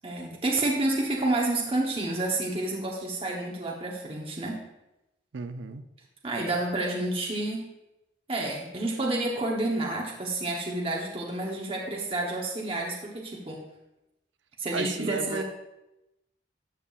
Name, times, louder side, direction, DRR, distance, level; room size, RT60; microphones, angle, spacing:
voice 1, 0.0-4.6 6.2-7.7 8.3-13.6 14.6-15.4, right 2 dB, 30° right, -2 dB, 1.0 m, -29 dB
voice 2, 5.3-5.8 14.7-15.4, right 4 dB, 75° right, 9 dB, 0.5 m, -34 dB
12.5 x 6.8 x 2.5 m, 0.94 s
head